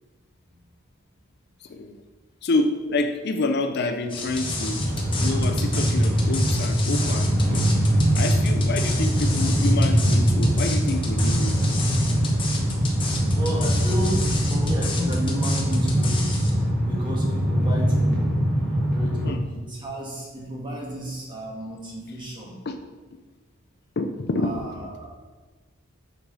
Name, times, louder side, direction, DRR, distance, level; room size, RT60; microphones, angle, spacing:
voice 1, 1.6-2.0 2.4-4.8 5.2-7.7 8.1-11.5 19.2-19.4 22.7-22.8 24.0-24.6, left 2 dB, 50° left, 7 dB, 0.5 m, -28 dB
sound 1, 4.1-16.5, left 4 dB, 25° left, 0.9 m, -32 dB
Train, 4.2-19.3, equal, 5° left, 2.3 m, -22 dB
voice 2, 13.3-16.2 16.9-18.3 18.8-22.6 24.4-25.1, right 1 dB, 20° right, -3 dB, 1.5 m, -32 dB
6.7 x 4.7 x 5.4 m, 1.3 s
head